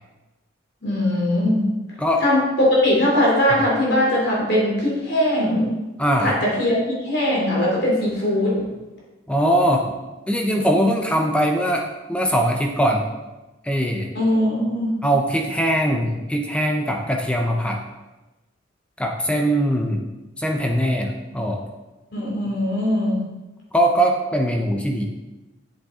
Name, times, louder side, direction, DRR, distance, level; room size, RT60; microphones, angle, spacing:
voice 1, 0.8-1.7 2.2-5.8 6.2-8.6 14.1-15.0 22.1-23.2, left 1 dB, 55° left, -4 dB, 3.1 m, -20 dB
voice 2, 6.0-6.3 9.3-9.9 10.3-13.1 13.6-14.1 15.0-17.8 19.0-20.1 20.4-21.6 23.7-25.1, equal, 5° left, 2 dB, 0.6 m, -21 dB
8.4 x 7.1 x 3.7 m, 1.1 s
head